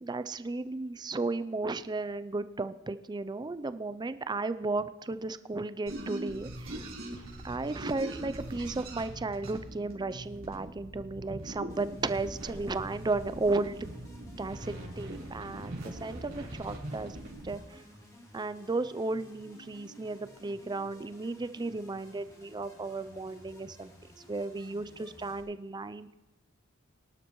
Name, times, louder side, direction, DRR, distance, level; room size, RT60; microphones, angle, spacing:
voice 1, 0.0-6.9 7.4-13.9 14.4-17.2 17.4-17.8 18.3-23.9 24.3-26.1, right 3 dB, 20° right, 13 dB, 0.4 m, -34 dB
sound 1, 5.9-17.6, right 1 dB, 70° right, 4.0 m, -42 dB
sound 2, 11.7-25.4, equal, 15° left, 3.2 m, -55 dB
23.5 x 11.5 x 3.1 m, 1.1 s
head